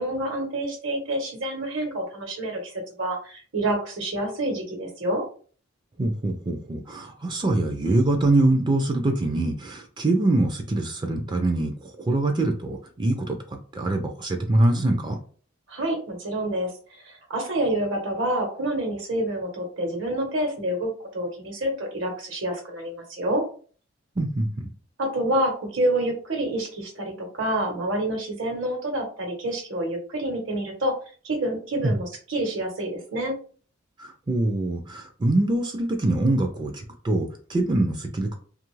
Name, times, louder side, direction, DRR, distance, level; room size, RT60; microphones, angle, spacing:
voice 1, 0.0-5.2 15.7-23.4 25.0-30.9 31.2-33.4, right 1 dB, 70° right, 2 dB, 1.0 m, -28 dB
voice 2, 6.0-15.2 24.2-24.7 31.8-32.0 34.0-38.3, right 2 dB, 25° right, 4 dB, 0.4 m, -24 dB
2.7 x 2.4 x 3.1 m, 0.42 s
head